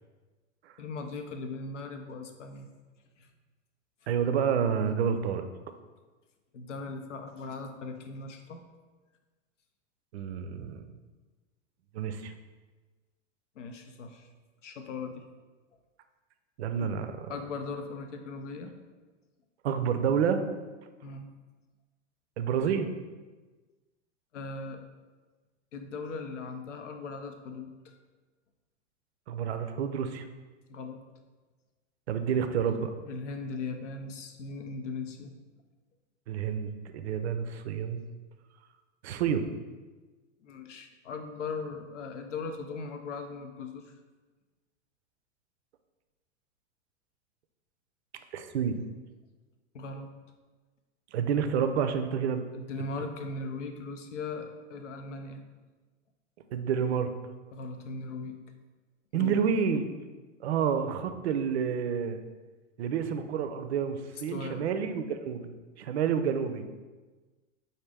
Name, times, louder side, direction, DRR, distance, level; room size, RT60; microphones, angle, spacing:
voice 1, 0.8-2.7 3.2-3.3 6.5-8.6 13.6-14.3 14.6-15.2 16.8-17.0 17.3-18.7 21.0-21.3 24.3-24.8 25.7-28.0 30.7-31.0 33.1-35.3 40.4-43.9 49.7-50.1 52.5-55.4 57.5-58.4 59.1-59.4 64.1-64.6, left 3 dB, 70° left, 6 dB, 0.6 m, -39 dB
voice 2, 4.1-5.4 10.1-10.9 11.9-12.3 16.6-17.3 19.6-20.4 22.4-22.9 29.3-30.2 32.1-32.9 36.3-38.0 39.0-39.5 48.3-48.8 51.1-52.5 56.5-57.1 59.1-59.9 60.4-62.2 62.8-65.5 65.8-66.7, right 7 dB, 60° right, 9 dB, 0.5 m, -29 dB
5.0 x 2.6 x 3.3 m, 1.3 s
figure-of-eight pair, 95°, 38 cm